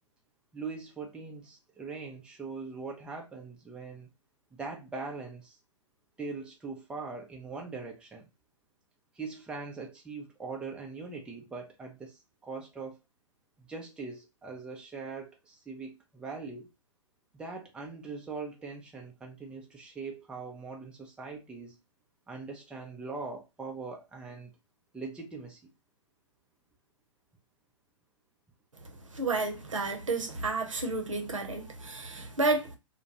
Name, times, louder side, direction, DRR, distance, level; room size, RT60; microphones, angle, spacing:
voice 1, 0.5-4.1 4.5-5.6 6.2-8.3 9.1-13.0 13.6-16.7 17.3-21.8 22.3-24.5 24.9-25.6, right 4 dB, 5° right, 0.4 m, -41 dB
voice 2, 29.1-32.8, right 3 dB, 80° right, 0.7 m, -31 dB
2.2 x 2.1 x 2.8 m
figure-of-eight pair, 115°, 16 cm